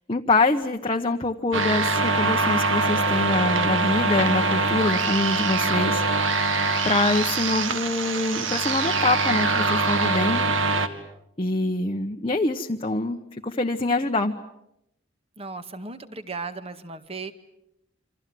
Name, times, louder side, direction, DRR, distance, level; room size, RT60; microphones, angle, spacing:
voice 1, 0.1-6.0 6.4-6.5 6.8-10.5 11.4-13.2 13.4-14.3, left 2 dB, 25° left, 2 dB, 1.1 m, -25 dB
sound 1, 1.5-10.9, right 3 dB, 75° right, 2.2 m, -23 dB
voice 2, 15.4-17.3, right 3 dB, 30° right, 9 dB, 1.8 m, -36 dB
28.0 x 26.5 x 7.7 m, 0.82 s
head